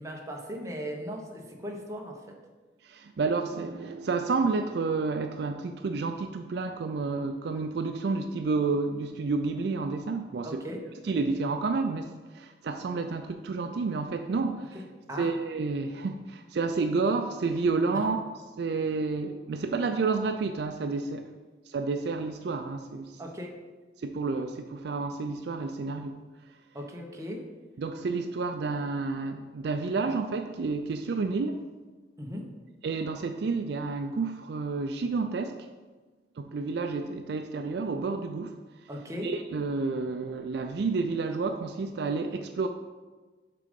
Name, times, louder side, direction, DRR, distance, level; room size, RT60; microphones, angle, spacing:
voice 1, 0.0-2.4 10.4-10.8 15.1-15.3 23.2-23.5 26.7-27.4 32.2-32.4 38.9-39.3, equal, 15° right, 0 dB, 0.9 m, -37 dB
voice 2, 2.8-10.5 11.0-14.8 15.2-18.3 18.6-21.2 21.7-23.2 24.0-26.2 27.8-31.6 32.8-35.6 36.4-38.6 39.2-42.7, right 4 dB, 60° right, 7 dB, 0.4 m, -30 dB
6.7 x 3.8 x 5.2 m, 1.3 s
head